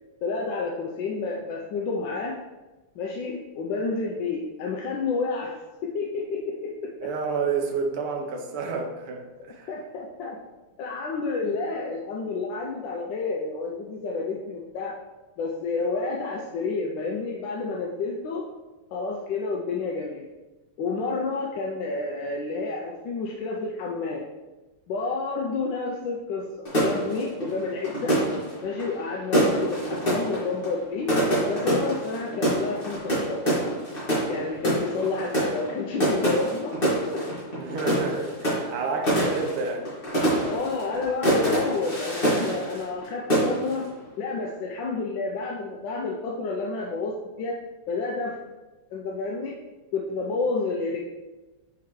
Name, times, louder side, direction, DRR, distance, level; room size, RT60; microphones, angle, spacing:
voice 1, 0.2-2.3 3.0-5.5 5.8-6.7 7.0-7.1 9.7-10.4 10.8-14.9 15.4-18.4 18.9-20.3 20.8-24.3 24.9-28.1 28.6-31.1 31.5-33.4 34.3-37.2 40.5-43.9 44.2-47.6 47.9-48.4 48.9-49.6 49.9-51.0, left 4 dB, 70° left, -1 dB, 1.2 m, -30 dB
voice 2, 7.0-9.7 37.6-39.9, right 4 dB, 80° right, 3 dB, 1.7 m, -30 dB
sound 1, 26.7-43.1 43.3-43.9, right 1 dB, 25° left, 2.3 m, -26 dB
5.8 x 5.8 x 3.1 m, 1.2 s
omnidirectional pair, 2.4 m